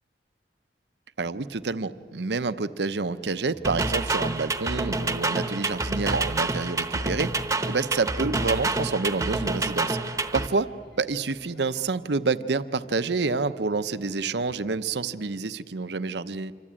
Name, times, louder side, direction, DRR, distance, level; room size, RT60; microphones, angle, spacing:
voice 1, 1.2-7.3 7.7-10.0 10.3-16.5, right 4 dB, 75° right, 13 dB, 0.7 m, -28 dB
sound 1, 1.4-2.1 2.9-4.0 4.8-6.0 6.4-7.4 8.0-8.4 8.7-9.7 10.4-13.0 13.8-14.9, left 1 dB, 65° left, 5.9 m, -56 dB
sound 2, 3.6-10.5, right 2 dB, 15° right, 0.9 m, -28 dB
26.5 x 24.5 x 8.8 m, 2.1 s
head